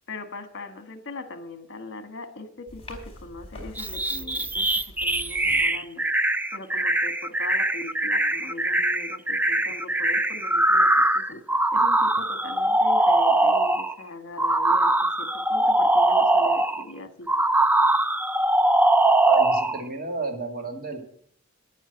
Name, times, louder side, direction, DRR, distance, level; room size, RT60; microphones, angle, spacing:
voice 1, 0.1-4.7 5.0-6.0 6.5-10.9 11.1-11.4 11.7-14.9 15.2-17.3, left 2 dB, 55° left, 8 dB, 1.5 m, -40 dB
sound 1, 2.7-5.7, left 1 dB, 25° left, 4.5 m, -44 dB
sound 2, 3.8-13.9 14.4-16.8 17.3-19.8, right 1 dB, 10° right, 0.4 m, -22 dB
voice 2, 19.2-21.0, right 3 dB, 45° right, 3 dB, 2.4 m, -32 dB
10.0 x 9.2 x 7.9 m, 0.63 s
head